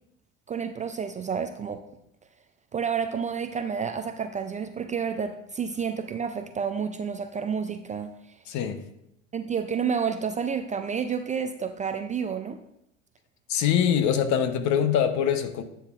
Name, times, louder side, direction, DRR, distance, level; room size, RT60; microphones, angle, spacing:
voice 1, 0.5-1.8 2.7-8.1 9.3-12.6, right 6 dB, 20° right, 0.4 m, -30 dB
voice 2, 8.5-8.8 13.5-15.6, left 8 dB, 50° left, 0.9 m, -23 dB
10.0 x 7.0 x 2.5 m
hypercardioid pair, 85°, 37 cm